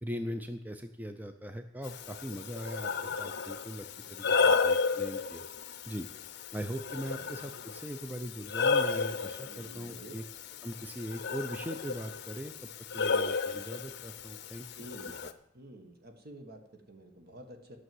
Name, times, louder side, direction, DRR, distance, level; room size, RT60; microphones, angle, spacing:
voice 1, 0.0-5.5 5.9-6.1 6.5-10.2 10.6-14.9 15.2-15.3, equal, 10° right, 7 dB, 0.6 m, -40 dB
Breathing, 1.8-15.3, left 5 dB, 60° left, 0.7 m, -33 dB
voice 2, 4.1-4.5 7.0-7.3 9.4-10.2 14.8-15.2 15.5-17.8, right 1 dB, 55° right, 6 dB, 1.6 m, -50 dB
12.5 x 6.4 x 7.8 m, 0.83 s
head